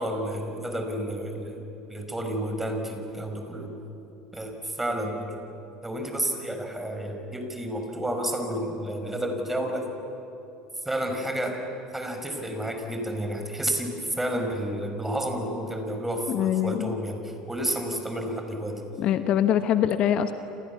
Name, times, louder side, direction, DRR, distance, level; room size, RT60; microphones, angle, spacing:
voice 1, 0.0-3.7 4.3-5.4 5.8-9.8 10.9-11.6 11.9-18.8, right 1 dB, 10° right, 5 dB, 5.6 m, -31 dB
voice 2, 16.3-16.9 19.0-20.3, left 10 dB, 50° left, 10 dB, 1.1 m, -23 dB
29.0 x 28.0 x 7.3 m, 3.0 s
figure-of-eight pair, 70°, 2 cm